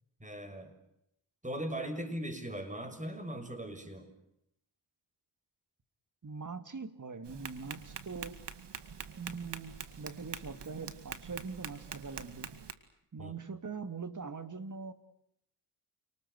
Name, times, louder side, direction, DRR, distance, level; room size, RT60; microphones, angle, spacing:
voice 1, 0.2-0.7 1.4-4.1 13.2-13.3, right 1 dB, 15° right, 7 dB, 6.3 m, -39 dB
voice 2, 6.2-8.4 9.2-12.5 13.1-14.9, right 5 dB, 35° right, 11 dB, 2.5 m, -42 dB
Tap, 7.2-12.7, right 6 dB, 55° right, 2.2 m, -45 dB
28.5 x 20.0 x 8.2 m, 0.77 s
cardioid pair, 65°, 50 cm